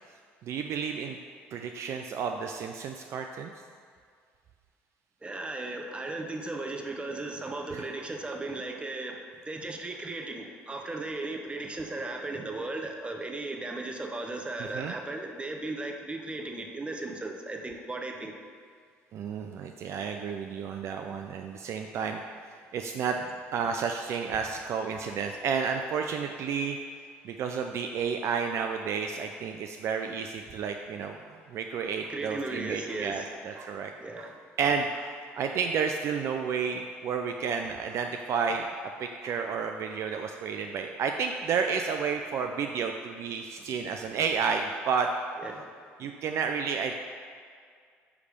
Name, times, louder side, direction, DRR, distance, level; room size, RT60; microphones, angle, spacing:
voice 1, 0.4-1.2 1.5-3.5 7.7-7.9 14.6-15.0 19.1-22.2 22.7-23.2 23.5-26.8 27.2-31.2 31.5-33.9 34.2-34.3 34.6-38.7 39.0-45.1 46.0-46.9, right 6 dB, 55° right, 4 dB, 0.5 m, -31 dB
voice 2, 5.2-18.3 32.1-33.3 34.0-34.3 45.4-45.7, right 2 dB, 20° right, 3 dB, 1.0 m, -36 dB
9.7 x 3.3 x 5.2 m, 2.1 s
hypercardioid pair, 70°, 6 cm